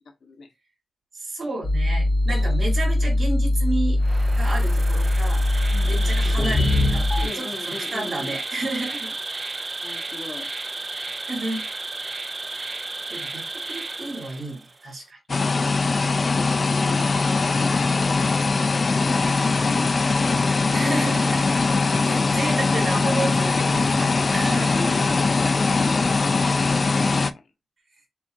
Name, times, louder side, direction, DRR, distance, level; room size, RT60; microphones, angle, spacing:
voice 1, 0.2-0.5 5.7-6.8 7.2-8.4 9.8-10.6 16.0-18.4 22.0-22.3 24.7-27.5, left 3 dB, 75° left, 1.0 m, -39 dB
voice 2, 1.1-4.0 4.4-5.5 5.8-9.1 11.2-11.6 12.5-12.7 13.1-15.2 20.7-21.6 22.0-24.8, right 2 dB, 55° right, 3.2 m, -31 dB
sound 1, 1.6-7.3, left 1 dB, 25° left, 0.9 m, -21 dB
Insect, 4.0-14.8, right 3 dB, 35° right, 0.5 m, -33 dB
sound 2, 15.3-27.3, left 3 dB, 45° left, 0.4 m, -21 dB
6.8 x 2.5 x 2.7 m
wide cardioid pair, 130°, 0 cm